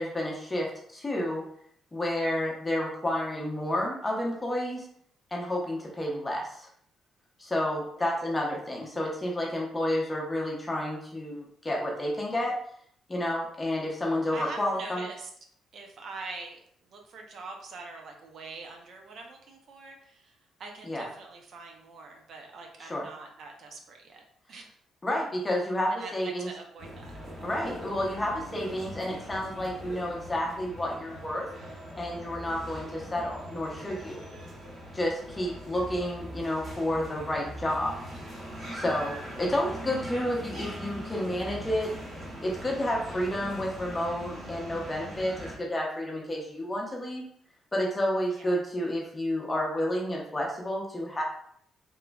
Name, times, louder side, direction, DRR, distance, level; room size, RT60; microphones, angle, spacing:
voice 1, 0.0-1.4 1.9-4.9 5.3-6.7 7.4-12.5 13.1-15.1 20.9-21.0 22.9-23.0 25.0-26.5 27.4-31.5 32.0-34.2 34.9-37.9 38.7-41.9 42.4-47.2 47.7-51.2, left 1 dB, 20° left, -2 dB, 0.8 m, -30 dB
voice 2, 14.3-15.3 15.7-16.6 16.9-24.7 25.9-27.1 48.3-48.6, right 3 dB, 65° right, 2 dB, 0.5 m, -44 dB
sound 1, 26.8-45.6, equal, 40° right, 1.3 m, -41 dB
3.0 x 2.3 x 2.2 m, 0.65 s
cardioid pair, 90°, 0 cm